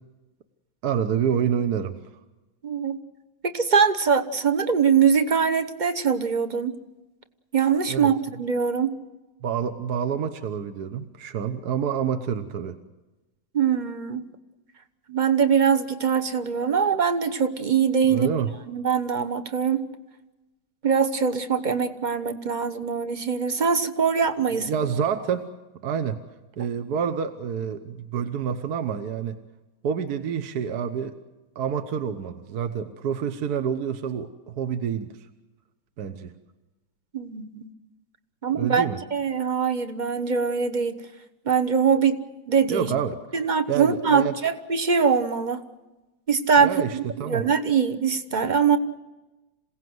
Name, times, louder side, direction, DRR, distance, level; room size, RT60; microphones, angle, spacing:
voice 1, 0.8-2.0 7.9-8.1 9.4-12.8 18.1-18.5 24.6-25.5 25.8-26.2 26.6-29.4 29.8-31.2 31.5-35.1 36.0-36.3 38.5-39.0 42.7-43.2 43.7-44.4 46.6-47.5, right 7 dB, 60° right, 9 dB, 1.4 m, -27 dB
voice 2, 2.6-3.0 3.4-6.8 7.5-9.0 13.5-14.2 15.1-18.3 18.7-19.9 20.8-24.7 37.1-37.7 38.4-38.8 39.1-41.0 41.5-42.2 42.5-42.9 43.3-45.6 46.3-48.8, right 6 dB, 35° right, 9 dB, 0.9 m, -22 dB
27.0 x 17.0 x 7.9 m, 1.1 s
omnidirectional pair, 2.1 m